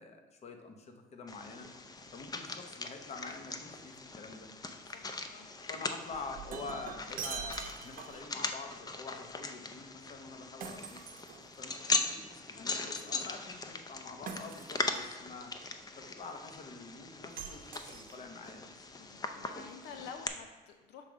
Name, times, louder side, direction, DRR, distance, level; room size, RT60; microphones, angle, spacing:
voice 1, 0.0-1.7 2.1-4.5 5.7-11.1 11.6-15.5 16.0-18.7, left 4 dB, 40° left, 5 dB, 0.9 m, -46 dB
sound 1, 1.3-20.3, left 3 dB, 20° left, 0.6 m, -40 dB
voice 2, 4.8-5.5 12.6-13.4 19.0-21.0, left 6 dB, 75° left, 6 dB, 0.6 m, -50 dB
Shatter, 6.1-8.3 10.6-11.9 14.3-15.1 17.4-18.5, right 6 dB, 55° right, 0.8 m, -44 dB
6.9 x 3.5 x 5.0 m, 1.4 s
cardioid pair, 110°, 17 cm